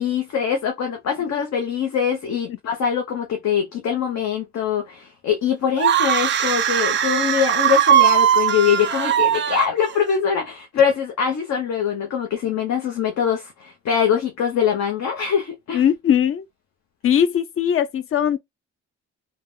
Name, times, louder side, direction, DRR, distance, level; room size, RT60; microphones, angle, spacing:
voice 1, 0.0-15.8, left 7 dB, 65° left, 0.9 m, -23 dB
sound 1, 5.8-10.2, right 10 dB, 40° right, 0.4 m, -19 dB
voice 2, 15.7-16.4 17.0-18.4, left 9 dB, 45° left, 0.5 m, -19 dB
3.4 x 2.2 x 2.2 m
cardioid pair, 90°, 30 cm